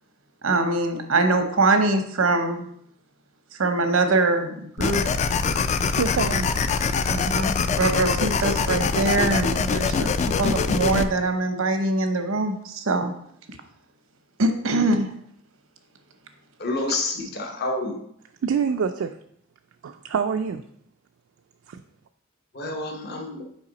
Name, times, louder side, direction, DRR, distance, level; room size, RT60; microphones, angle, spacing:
voice 1, 0.4-2.7 3.5-5.0 7.1-13.1 14.4-15.1, right 2 dB, 90° right, 7 dB, 0.8 m, -23 dB
sound 1, 4.8-11.0, left 5 dB, 35° left, 0.3 m, -23 dB
voice 2, 6.0-6.5 18.4-19.2 19.8-20.6 21.7-21.8, right 6 dB, 70° right, 7 dB, 0.3 m, -25 dB
voice 3, 16.6-18.0 22.5-23.4, left 2 dB, 55° left, 1 dB, 0.9 m, -28 dB
5.8 x 4.7 x 4.0 m, 0.70 s
head